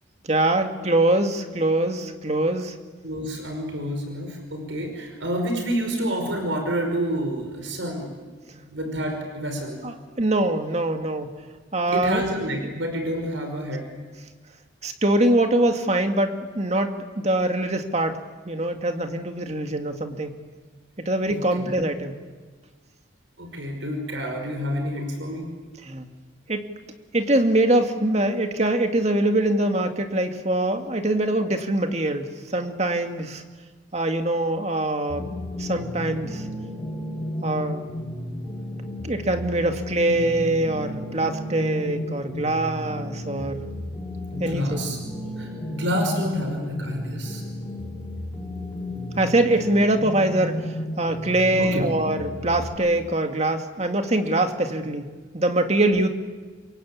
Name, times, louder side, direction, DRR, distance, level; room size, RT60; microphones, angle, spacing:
voice 1, 0.2-2.7 9.8-11.3 11.7-12.2 14.8-20.4 21.1-22.2 25.8-26.1 26.5-26.7 27.1-33.4 33.9-35.3 35.6-36.4 37.4-37.9 39.0-43.6 44.4-44.8 49.2-56.1, right 1 dB, 35° right, 6 dB, 2.1 m, -23 dB
voice 2, 3.0-8.1 8.5-10.0 11.9-13.9 21.3-21.8 23.4-25.5 44.3-45.0 45.4-47.4 51.6-51.8, equal, 80° right, 4 dB, 5.4 m, -28 dB
sound 1, 35.1-52.7, left 1 dB, 15° left, 6.5 m, -33 dB
27.5 x 23.5 x 8.6 m, 1.4 s
head